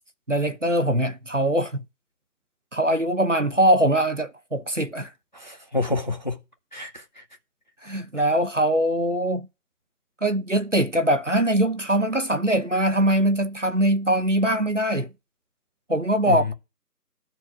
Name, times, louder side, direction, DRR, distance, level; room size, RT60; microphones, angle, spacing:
voice 1, 0.3-1.8 2.7-5.1 7.8-9.5 10.2-15.1 15.9-16.5, right 1 dB, 50° right, 1.2 m, -22 dB
voice 2, 5.3-6.4 6.7-7.2 16.2-16.5, left 3 dB, 25° left, 1.8 m, -28 dB
13.0 x 4.5 x 8.3 m
figure-of-eight pair, 180°, 49 cm